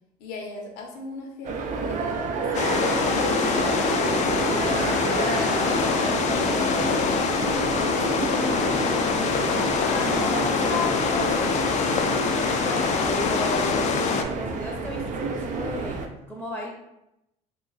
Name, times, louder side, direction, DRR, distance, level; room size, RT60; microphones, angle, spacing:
voice 1, 0.2-4.6 5.1-8.8, left 2 dB, 75° left, 1 dB, 0.9 m, -36 dB
sound 1, 1.4-16.1, right 4 dB, 55° right, 0.5 m, -29 dB
sound 2, 2.5-14.2, left 6 dB, 45° left, 0.4 m, -24 dB
voice 2, 9.9-16.0 16.3-16.7, left 2 dB, 5° left, -2 dB, 0.7 m, -34 dB
2.8 x 2.4 x 3.9 m, 0.86 s
supercardioid pair, 95°, 16 cm